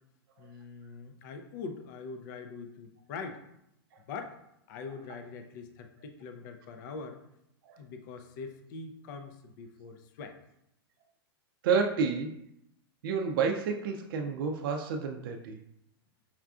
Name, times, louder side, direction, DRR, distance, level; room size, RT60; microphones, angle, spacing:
voice 1, 0.4-3.4 4.1-4.4 4.7-7.2 7.8-10.4, left 4 dB, 50° left, 6 dB, 0.4 m, -43 dB
voice 2, 11.6-12.3 13.0-15.6, right 5 dB, 60° right, 3 dB, 0.4 m, -30 dB
5.6 x 2.3 x 2.4 m, 0.79 s
supercardioid pair, 150°, 13 cm